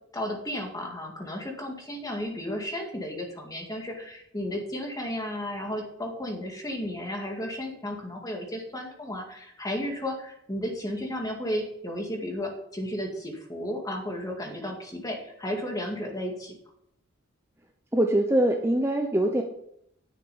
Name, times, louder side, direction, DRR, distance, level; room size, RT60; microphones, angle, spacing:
voice 1, 0.1-16.6, left 1 dB, 20° left, 1 dB, 2.0 m, -33 dB
voice 2, 17.9-19.4, right 1 dB, 10° right, 3 dB, 0.7 m, -23 dB
10.0 x 6.5 x 5.5 m, 0.73 s
head